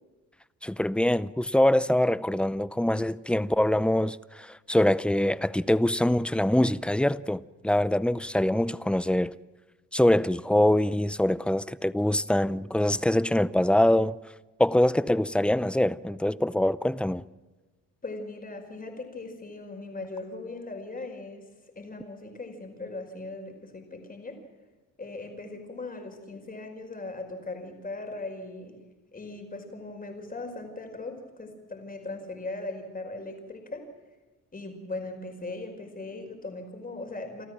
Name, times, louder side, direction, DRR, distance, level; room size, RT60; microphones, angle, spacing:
voice 1, 0.6-9.3 9.9-14.2 14.6-17.2, left 1 dB, 5° left, 0.6 m, -24 dB
voice 2, 18.0-21.4 21.7-24.4 25.0-28.8 29.1-33.8 34.5-37.5, left 2 dB, 30° left, 5.1 m, -39 dB
28.5 x 13.0 x 7.4 m
cardioid pair, 90°, 30 cm